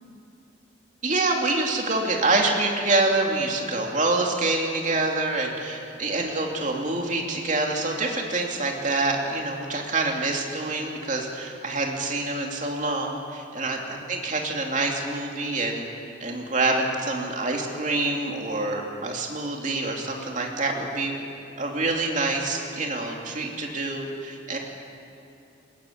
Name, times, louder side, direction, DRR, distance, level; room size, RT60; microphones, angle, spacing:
voice 1, 1.0-13.8 14.1-15.8 16.2-21.1 21.6-24.6, right 2 dB, 40° right, 1 dB, 2.7 m, -26 dB
21.0 x 19.0 x 8.7 m, 2.9 s
head